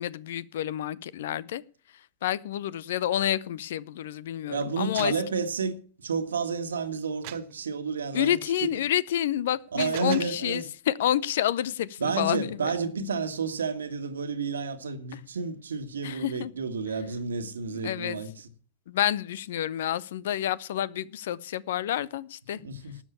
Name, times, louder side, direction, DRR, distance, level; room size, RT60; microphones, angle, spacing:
voice 1, 0.0-1.6 2.2-5.1 8.1-12.7 15.1-15.2 16.0-16.5 17.7-18.2 18.9-22.6, left 11 dB, 60° left, 0.6 m, -29 dB
voice 2, 4.5-8.7 9.7-10.6 12.0-18.5 22.5-23.0, right 5 dB, 70° right, 1.6 m, -31 dB
sound 1, 4.7-5.3 7.2-7.6 9.5-10.4, right 18 dB, 45° right, 0.7 m, -42 dB
12.5 x 7.2 x 8.4 m
figure-of-eight pair, 100°, 0 cm